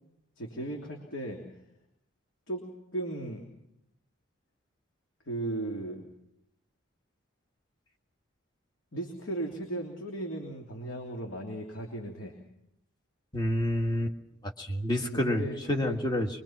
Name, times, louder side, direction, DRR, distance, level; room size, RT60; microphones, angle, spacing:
voice 1, 0.4-1.4 2.5-2.6 2.9-3.5 5.3-6.0 8.9-12.3 15.0-16.0, right 1 dB, 65° left, 0 dB, 3.2 m, -36 dB
voice 2, 13.3-14.1 14.6-16.3, left 1 dB, 20° left, 4 dB, 1.7 m, -28 dB
23.5 x 23.5 x 6.0 m, 0.80 s
head